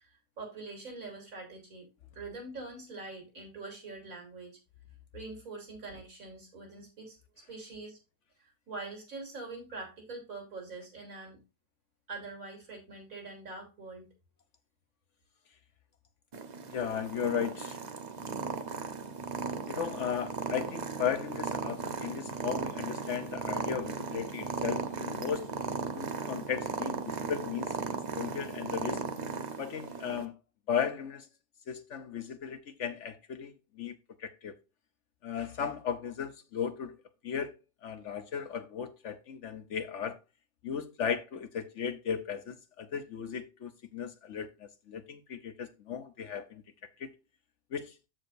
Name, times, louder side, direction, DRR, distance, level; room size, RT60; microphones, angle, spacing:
voice 1, 0.0-1.9 2.1-4.6 5.1-7.2 7.5-8.0 8.4-11.4 12.1-14.1, right 3 dB, 65° right, 3.8 m, -44 dB
Purr, 16.3-30.2, right 4 dB, 35° right, 0.8 m, -37 dB
voice 2, 16.7-17.8 19.7-25.5 25.9-27.7 28.2-29.0 29.6-30.3 30.7-31.3 31.7-33.9 34.2-34.5 35.2-37.0 37.2-37.5 37.8-40.2 40.6-46.6 47.0-47.1 47.7-47.8, left 7 dB, 60° left, 1.0 m, -36 dB
13.5 x 4.9 x 2.6 m
omnidirectional pair, 1.5 m